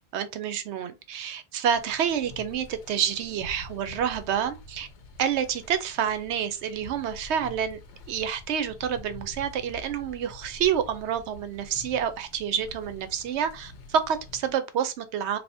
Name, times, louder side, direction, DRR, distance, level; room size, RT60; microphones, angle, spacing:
voice 1, 0.1-4.9 5.2-7.8 8.1-15.4, right 8 dB, 80° right, 0.9 m, -28 dB
sound 1, 1.7-14.5, left 2 dB, 80° left, 1.0 m, -47 dB
3.4 x 2.8 x 2.7 m
omnidirectional pair, 1.1 m